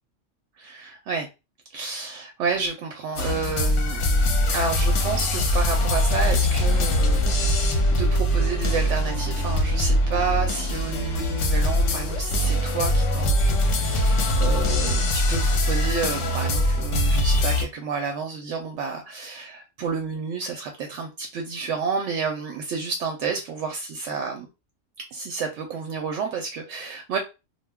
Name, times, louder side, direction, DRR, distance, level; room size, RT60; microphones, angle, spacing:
voice 1, 0.6-1.3 1.7-4.0 4.5-24.5 25.0-27.2, right 5 dB, 75° right, 0.9 m, -30 dB
sound 1, 3.2-17.6, left 1 dB, 75° left, 1.0 m, -22 dB
2.3 x 2.1 x 3.4 m
omnidirectional pair, 1.3 m